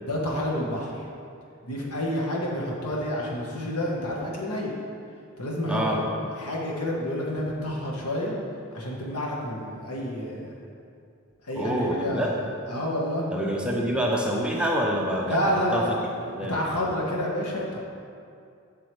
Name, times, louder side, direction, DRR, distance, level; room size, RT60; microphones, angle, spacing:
voice 1, 0.0-1.0 1.6-4.7 5.4-6.0 6.3-8.3 8.7-10.6 11.4-13.3 15.2-16.0 16.3-17.8, left 1 dB, 90° left, -3 dB, 1.5 m, -29 dB
voice 2, 5.7-6.0 11.6-12.3 13.3-15.8 16.4-16.6, equal, 5° right, -2 dB, 0.7 m, -26 dB
7.8 x 6.9 x 3.3 m, 2.4 s
head